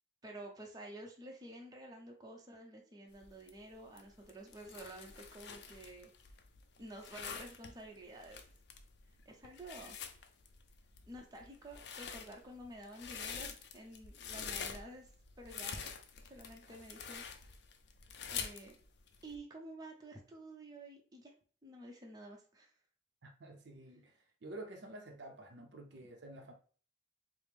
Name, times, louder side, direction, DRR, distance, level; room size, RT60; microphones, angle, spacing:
voice 1, 0.2-6.1 6.8-8.4 9.3-10.0 11.1-15.1 15.4-15.8 16.2-17.2 18.3-18.7 19.2-21.3 21.6-22.7, right 1 dB, 20° right, 0.6 m, -50 dB
sound 1, 3.1-19.4, left 6 dB, 60° left, 0.4 m, -46 dB
voice 2, 23.2-26.5, right 2 dB, 65° right, 0.6 m, -50 dB
4.8 x 2.0 x 3.3 m
head